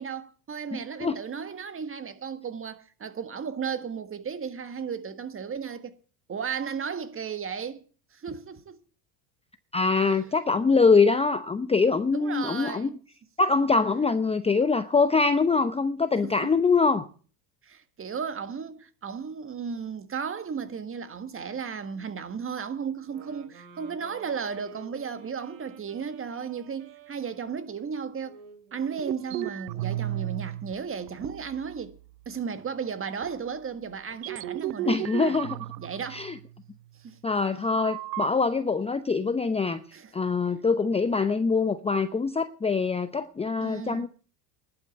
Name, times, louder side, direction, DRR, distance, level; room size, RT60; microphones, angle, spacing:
voice 1, 0.0-6.0 6.3-7.8 8.1-8.8 9.9-10.3 12.1-13.0 16.2-16.3 17.6-28.4 28.7-32.0 32.2-35.4 35.8-36.3 37.0-37.2 39.9-40.1 43.6-44.1, right 6 dB, 25° right, 1.7 m, -35 dB
voice 2, 0.7-1.2 9.7-12.9 13.4-17.1 34.9-35.6 36.1-36.3 37.2-39.8 40.1-44.1, left 4 dB, 10° left, 0.7 m, -24 dB
sound 1, 23.0-30.6, right 5 dB, 65° right, 3.7 m, -50 dB
sound 2, 29.0-30.7 31.1-32.0 32.5-32.6 33.2-33.4 34.1-36.6 37.8-38.3, right 17 dB, 85° right, 0.7 m, -34 dB
11.5 x 8.6 x 8.0 m
supercardioid pair, 105°, 50 cm